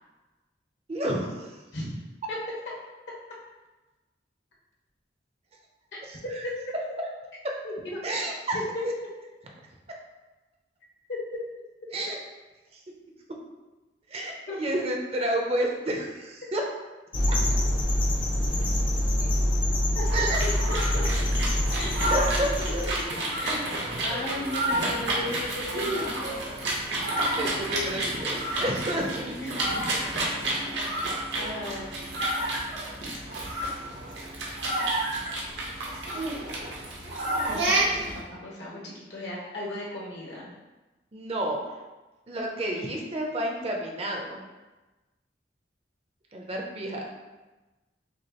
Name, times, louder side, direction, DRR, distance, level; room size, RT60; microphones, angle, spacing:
voice 1, 0.9-1.6 6.1-6.4 8.0-8.6 8.8-8.9 11.9-12.2 12.7-12.8 14.1-16.6 17.3-17.4 19.2-19.3 20.1-20.4 22.0-22.3 23.9-24.2 27.3-29.3 30.8-30.9 41.1-41.7 42.3-44.4 46.3-47.1, right 1 dB, 35° right, 0 dB, 0.6 m, -30 dB
voice 2, 7.6-8.3 11.1-11.2 14.5-14.6 19.9-21.0 21.8-23.0 23.4-26.4 27.2-27.5 29.4-29.8 30.2-30.7 31.3-32.1 35.1-35.3 37.4-40.5, left 1 dB, 70° left, -5 dB, 1.3 m, -37 dB
sound 1, 17.1-23.0, left 1 dB, 30° left, 0.5 m, -25 dB
sound 2, 20.0-38.2, right 1 dB, 75° right, 0.9 m, -30 dB
6.1 x 2.4 x 2.9 m, 1.1 s
head